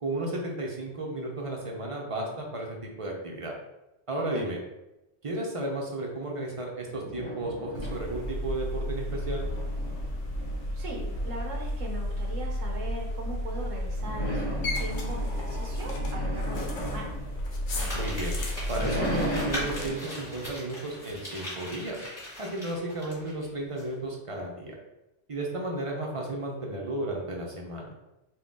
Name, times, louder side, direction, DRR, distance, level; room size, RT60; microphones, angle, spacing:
voice 1, 0.0-3.5 4.1-4.6 5.2-9.5 17.9-18.4 18.7-22.0 22.4-24.8 25.3-27.9, right 1 dB, 35° right, -1 dB, 0.6 m, -33 dB
sound 1, 6.9-8.5 8.9-11.6 13.9-18.1 18.5-21.6, equal, 10° left, 1.0 m, -37 dB
sound 2, 7.7-19.9, left 1 dB, 50° left, 0.7 m, -32 dB
voice 2, 10.7-17.2, right 2 dB, 90° right, 0 dB, 1.3 m, -40 dB
Crumpling crinkling, 17.7-23.5 23.8-23.9, left 1 dB, 30° left, 1.6 m, -39 dB
4.1 x 2.3 x 3.6 m, 0.94 s
omnidirectional pair, 1.3 m